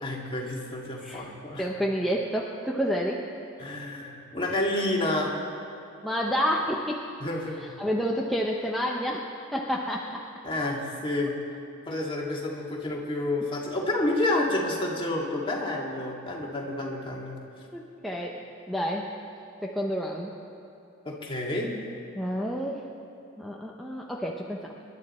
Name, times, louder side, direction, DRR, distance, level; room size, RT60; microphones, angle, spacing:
voice 1, 0.0-1.7 3.6-5.3 7.2-7.8 10.4-11.4 11.9-17.4 21.1-21.7, left 1 dB, 25° left, -2 dB, 2.2 m, -29 dB
voice 2, 1.6-3.2 6.0-7.0 7.8-9.2 9.5-10.2 17.7-18.4 18.7-19.1 19.6-20.3 22.1-22.9 23.4-24.7, equal, ahead, -3 dB, 0.8 m, -29 dB
27.0 x 11.5 x 4.3 m, 2.8 s
head